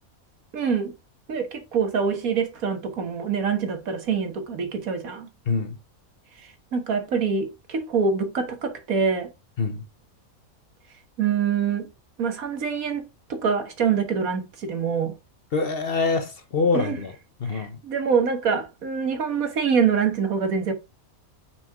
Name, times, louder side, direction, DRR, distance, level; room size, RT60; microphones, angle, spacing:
voice 1, 0.5-0.9 1.3-5.3 6.7-9.3 11.2-11.9 12.2-15.1 16.7-17.0 17.5-20.7, right 6 dB, 75° right, 1.8 m, -25 dB
voice 2, 5.5-5.8 9.6-9.8 15.5-17.1 17.4-17.8, left 4 dB, 50° left, 0.9 m, -25 dB
6.3 x 4.5 x 4.6 m
omnidirectional pair, 1.5 m